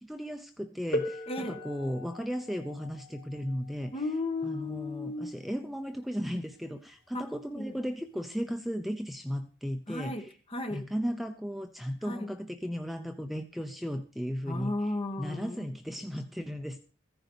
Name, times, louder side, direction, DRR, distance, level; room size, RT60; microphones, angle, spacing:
voice 1, 0.0-3.9 4.4-10.2 10.7-14.8 15.2-16.8, equal, ahead, 6 dB, 0.7 m, -35 dB
sound 1, 0.9-6.4 7.4-7.5 8.3-8.5, left 1 dB, 70° left, 3.5 m, -40 dB
voice 2, 1.3-1.6 3.9-5.3 7.1-7.3 7.5-7.7 9.9-10.9 12.0-12.3 14.5-15.7, left 2 dB, 30° left, 6 dB, 1.5 m, -35 dB
15.0 x 10.0 x 5.1 m, 0.39 s
head